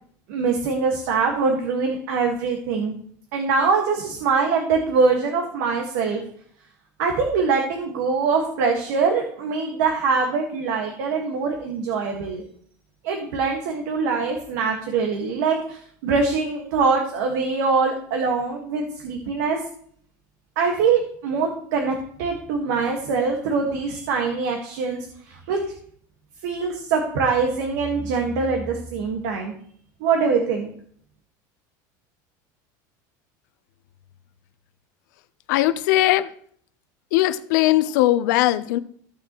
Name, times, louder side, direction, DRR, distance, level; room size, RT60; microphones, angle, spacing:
voice 1, 0.3-2.9 3.3-6.2 7.0-12.4 13.0-19.6 20.5-25.6 26.4-29.5 30.0-30.7, right 4 dB, 70° right, 2 dB, 1.7 m, -23 dB
voice 2, 35.5-36.3 37.1-38.8, left 15 dB, 75° left, 12 dB, 0.7 m, -19 dB
15.5 x 6.5 x 3.1 m, 0.62 s
supercardioid pair, 160°, 10 cm